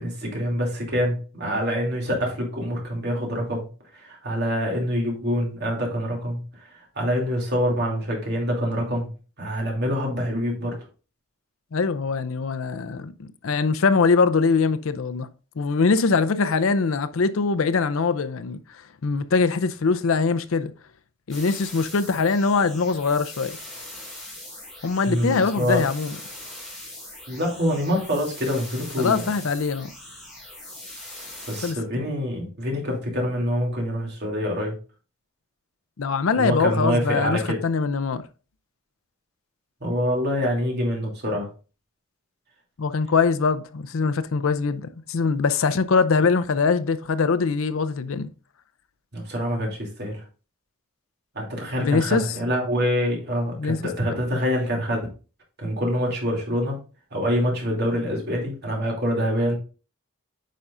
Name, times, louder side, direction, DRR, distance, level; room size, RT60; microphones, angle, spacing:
voice 1, 0.0-3.7 3.9-9.1 9.4-10.7 25.0-25.8 27.3-29.3 31.5-34.8 36.4-37.6 39.8-41.5 49.1-50.2 51.3-55.0 55.6-56.8 57.1-59.6, equal, 50° right, 2.8 m, -25 dB
voice 2, 11.7-15.3 15.6-18.6 19.0-20.7 21.3-23.5 24.8-26.1 29.0-29.9 31.6-31.8 36.0-38.2 42.8-48.3 51.8-52.2 53.6-53.8, left 4 dB, 65° left, 0.5 m, -22 dB
sound 1, 21.3-31.7, left 1 dB, ahead, 3.8 m, -41 dB
9.2 x 5.4 x 2.5 m
head